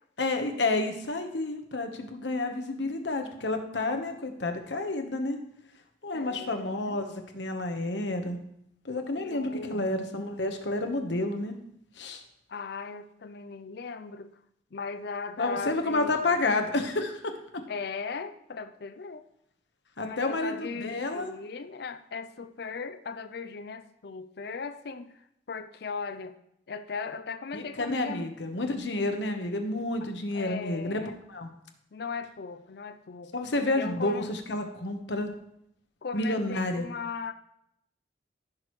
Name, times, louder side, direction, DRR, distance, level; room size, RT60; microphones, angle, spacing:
voice 1, 0.2-5.4 6.0-8.4 8.8-11.6 12.0-12.2 15.4-17.6 20.0-21.3 27.5-31.0 31.3-31.5 33.3-35.3 36.1-36.9, left 2 dB, 80° left, 6 dB, 1.2 m, -30 dB
voice 2, 6.1-7.0 9.2-9.9 12.5-14.3 14.7-16.6 17.7-19.3 20.0-26.4 26.7-28.3 30.0-31.2 31.9-33.3 33.8-34.3 36.0-37.3, left 5 dB, 60° left, 10 dB, 0.5 m, -38 dB
15.0 x 6.2 x 3.2 m, 0.76 s
head